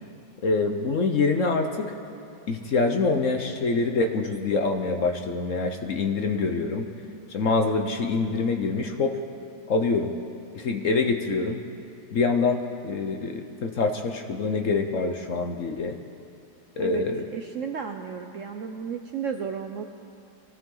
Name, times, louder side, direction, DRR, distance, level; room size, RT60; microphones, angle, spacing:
voice 1, 0.4-1.9 2.5-6.9 7.3-9.2 9.7-10.1 10.5-11.6 12.1-16.0 16.8-17.3, left 3 dB, 55° left, 5 dB, 1.0 m, -25 dB
voice 2, 17.3-19.8, right 6 dB, 65° right, 5 dB, 0.8 m, -33 dB
23.5 x 15.0 x 3.9 m, 2.5 s
omnidirectional pair, 2.0 m